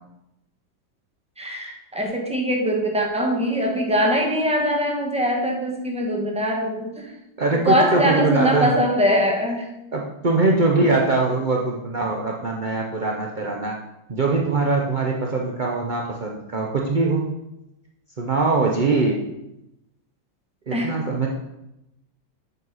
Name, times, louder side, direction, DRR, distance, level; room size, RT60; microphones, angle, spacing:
voice 1, 1.4-7.1 7.6-9.7 20.7-20.9, equal, 5° right, 1 dB, 1.0 m, -22 dB
voice 2, 7.4-8.7 9.9-13.8 14.1-17.2 18.2-19.2 20.7-21.3, right 3 dB, 60° right, -1 dB, 0.5 m, -22 dB
7.9 x 5.3 x 5.5 m, 0.89 s
omnidirectional pair, 2.0 m